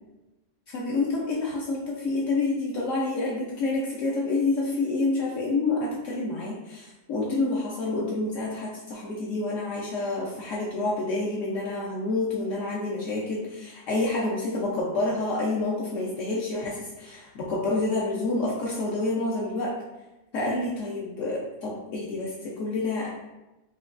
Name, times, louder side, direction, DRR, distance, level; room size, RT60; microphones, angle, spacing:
voice 1, 0.7-19.7 20.3-23.1, left 2 dB, 70° left, -5 dB, 0.7 m, -28 dB
5.4 x 2.3 x 2.4 m, 1.0 s
omnidirectional pair, 1.9 m